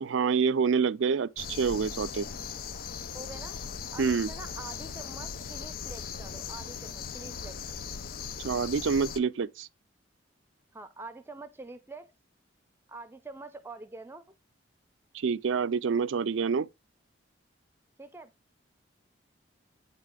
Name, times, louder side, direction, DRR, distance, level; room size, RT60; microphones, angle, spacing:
voice 1, 0.0-2.3 4.0-4.3 8.4-9.7 15.1-16.7, right 5 dB, 85° right, 0.4 m, -27 dB
sound 1, 1.4-9.2, left 6 dB, 50° left, 0.4 m, -39 dB
voice 2, 3.1-3.6 3.9-7.6 10.7-12.1 12.9-14.4 18.0-18.3, right 3 dB, 10° right, 0.6 m, -45 dB
8.8 x 4.1 x 3.6 m
head